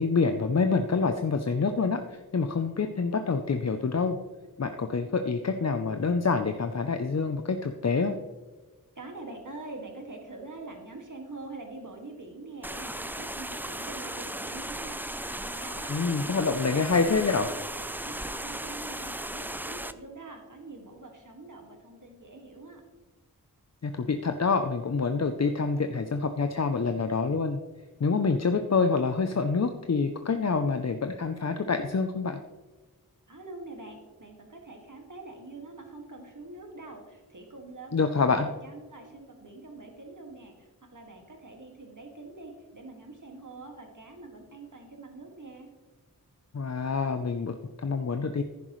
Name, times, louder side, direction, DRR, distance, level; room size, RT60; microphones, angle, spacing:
voice 1, 0.0-4.2 4.6-8.1 15.9-17.5 23.8-27.6 28.0-32.4 37.9-38.5 46.5-48.4, left 4 dB, 45° left, 7 dB, 0.6 m, -27 dB
voice 2, 9.0-17.6 17.9-22.8 33.3-45.7, right 2 dB, 55° right, 2 dB, 2.1 m, -45 dB
sound 1, 12.6-19.9, right 1 dB, 5° right, 0.4 m, -36 dB
10.5 x 10.5 x 3.1 m, 1.3 s
wide cardioid pair, 45°, 37 cm